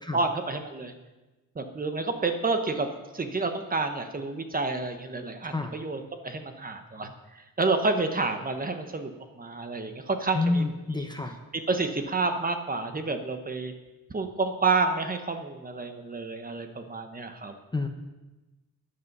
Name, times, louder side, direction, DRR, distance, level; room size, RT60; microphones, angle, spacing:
voice 1, 0.1-0.9 1.5-2.9 3.1-10.6 11.5-13.7 14.1-17.5, right 3 dB, 25° right, 7 dB, 1.1 m, -29 dB
voice 2, 10.3-11.3 17.7-17.9, left 3 dB, 10° left, 5 dB, 0.8 m, -28 dB
14.0 x 9.9 x 5.5 m, 1.1 s
wide cardioid pair, 145°, 35 cm